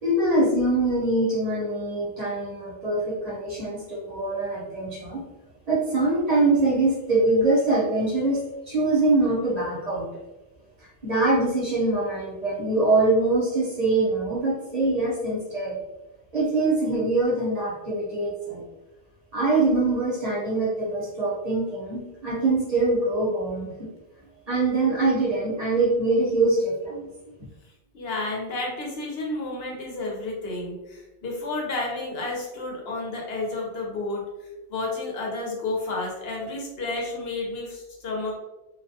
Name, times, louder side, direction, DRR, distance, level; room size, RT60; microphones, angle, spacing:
voice 1, 0.0-5.2 5.7-10.1 10.8-15.8 16.3-18.6 19.3-23.9 24.5-27.1, right 2 dB, 40° right, -7 dB, 0.8 m, -23 dB
voice 2, 27.9-34.2 34.7-38.4, left 2 dB, 65° left, -2 dB, 0.8 m, -31 dB
2.4 x 2.1 x 2.6 m, 1.0 s
omnidirectional pair, 1.2 m